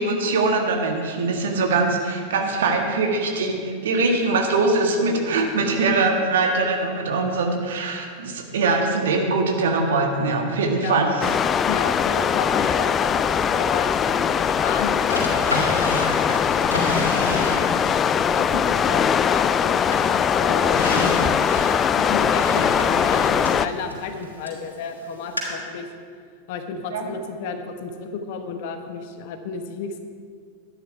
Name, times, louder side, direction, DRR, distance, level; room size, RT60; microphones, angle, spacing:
voice 1, 0.0-11.3 26.9-27.0, right 3 dB, 60° right, 2 dB, 1.7 m, -22 dB
sound 1, 11.2-23.7, left 7 dB, 25° left, 0.3 m, -21 dB
voice 2, 11.6-16.8 18.1-21.5 21.9-25.9 26.5-30.0, left 5 dB, 50° left, 7 dB, 1.1 m, -32 dB
Drawer open or close, 15.1-18.0 18.5-19.6 19.9-24.6 25.4-25.5, left 1 dB, 85° left, 3.2 m, -29 dB
12.5 x 10.0 x 4.7 m, 2.1 s
figure-of-eight pair, 90°, 0 cm